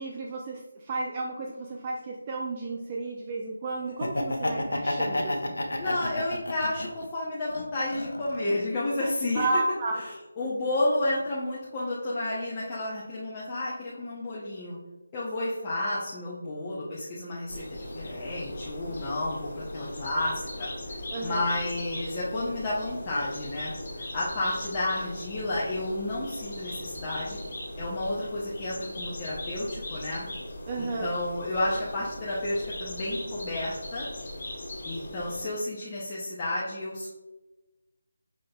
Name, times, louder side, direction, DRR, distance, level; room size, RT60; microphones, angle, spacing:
voice 1, 0.0-5.6 9.4-10.0 21.1-21.5 30.7-31.1, right 3 dB, 25° right, 0 dB, 0.3 m, -32 dB
Laughter, 3.9-7.0 7.5-8.6, left 1 dB, 80° left, 0.7 m, -30 dB
voice 2, 5.8-9.5 10.0-14.8 15.1-27.4 27.8-30.3 30.8-34.1 34.8-37.1, left 1 dB, 20° left, -8 dB, 0.7 m, -31 dB
sound 1, 17.5-35.4, left 1 dB, 40° left, 1.3 m, -39 dB
5.1 x 3.8 x 2.3 m, 1.1 s
figure-of-eight pair, 165°, 0 cm